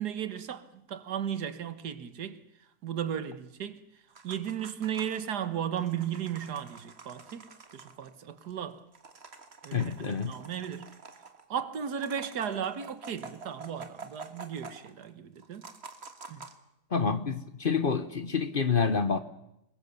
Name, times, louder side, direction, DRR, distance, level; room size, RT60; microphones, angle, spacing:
voice 1, 0.0-2.4 2.8-3.8 4.2-8.8 9.6-10.9 11.5-15.7 16.3-16.5, right 9 dB, 85° right, 1.8 m, -35 dB
sound 1, 4.1-5.3 5.7-8.1 8.4-8.5 8.8-11.4 11.9-15.0 15.4-16.6, right 4 dB, 40° right, 1.9 m, -48 dB
voice 2, 9.7-10.3 16.9-19.2, left 5 dB, 40° left, 1.0 m, -28 dB
25.0 x 21.5 x 6.9 m
omnidirectional pair, 1.7 m